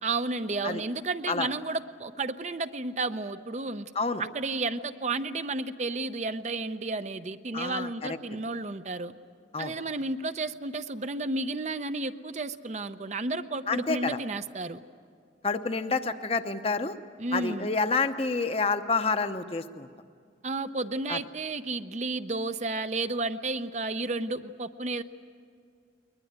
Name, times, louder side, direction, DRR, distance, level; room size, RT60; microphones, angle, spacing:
voice 1, 0.0-3.9 4.2-9.1 9.6-14.8 17.2-17.7 20.4-25.0, right 3 dB, 40° right, 10 dB, 0.6 m, -32 dB
voice 2, 7.5-8.2 9.5-9.7 13.7-14.2 15.4-16.9 17.3-19.9 21.1-21.2, left 4 dB, 30° left, 9 dB, 0.8 m, -28 dB
21.5 x 21.0 x 9.4 m, 2.2 s
head